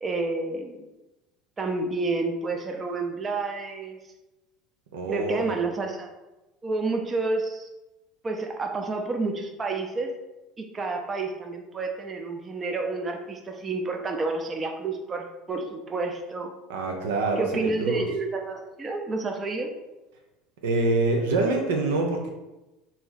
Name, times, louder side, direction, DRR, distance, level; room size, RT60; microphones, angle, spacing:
voice 1, 0.0-0.8 1.6-4.0 5.1-6.1 6.6-7.7 8.2-10.1 10.6-16.5 17.4-19.7, right 3 dB, 25° right, 3 dB, 0.5 m, -29 dB
voice 2, 4.9-5.7 16.7-18.1 20.6-22.3, right 3 dB, 90° right, 2 dB, 0.5 m, -26 dB
2.9 x 2.7 x 3.9 m, 1.1 s
supercardioid pair, 100°, 0 cm